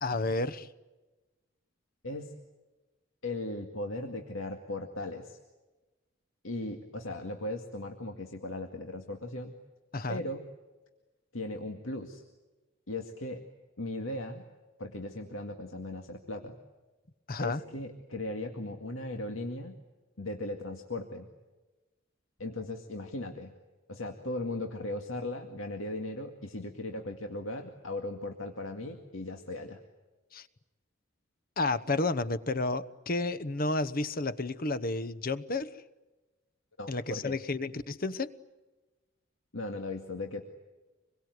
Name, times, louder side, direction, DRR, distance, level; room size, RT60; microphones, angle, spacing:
voice 1, 0.0-0.7 9.9-10.2 17.3-17.6 30.3-30.5 31.6-35.8 36.9-38.3, left 2 dB, 45° left, 15 dB, 1.0 m, -31 dB
voice 2, 2.0-2.4 3.2-5.4 6.4-9.5 10.1-10.4 11.3-12.2 12.9-13.4 13.8-14.4 14.8-16.6 17.4-19.8 20.2-21.3 22.4-23.5 23.9-29.8 36.8-37.4 39.5-40.4, left 2 dB, 80° left, 4 dB, 2.2 m, -37 dB
27.0 x 22.5 x 9.5 m, 1.2 s
head